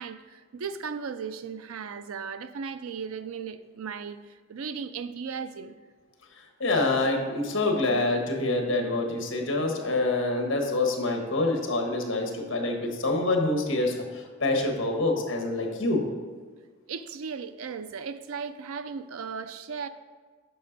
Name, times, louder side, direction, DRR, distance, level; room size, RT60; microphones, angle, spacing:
voice 1, 0.0-5.7 16.9-19.9, right 6 dB, 90° right, 11 dB, 0.5 m, -36 dB
voice 2, 6.6-16.0, left 2 dB, 70° left, 2 dB, 1.3 m, -26 dB
8.6 x 5.8 x 4.0 m, 1.5 s
head